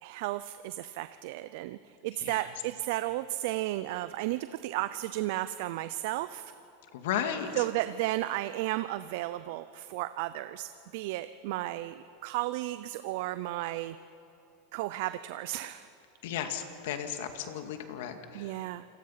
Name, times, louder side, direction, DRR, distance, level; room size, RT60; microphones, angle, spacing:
voice 1, 0.0-6.5 7.5-14.0 14.7-15.9 18.3-18.9, right 16 dB, 65° right, 13 dB, 0.6 m, -34 dB
voice 2, 6.9-7.6 16.2-18.5, left 9 dB, 70° left, 7 dB, 2.1 m, -34 dB
28.0 x 19.0 x 5.8 m, 2.9 s
supercardioid pair, 125°, 0 cm